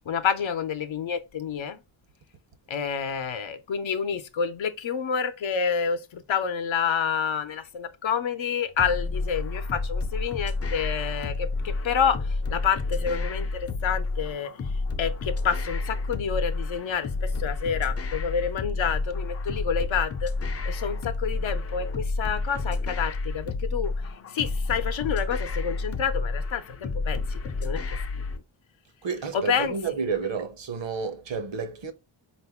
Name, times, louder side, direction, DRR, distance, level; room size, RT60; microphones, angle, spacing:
voice 1, 0.0-1.8 2.7-12.2 12.5-14.5 15.0-20.3 20.7-23.9 24.3-28.2 29.3-29.8, left 7 dB, 75° left, 0.7 m, -28 dB
sound 1, 8.8-28.4, left 3 dB, 35° left, 0.4 m, -30 dB
voice 2, 29.0-31.9, right 5 dB, 65° right, 0.8 m, -30 dB
4.3 x 2.6 x 3.4 m
wide cardioid pair, 110°, 47 cm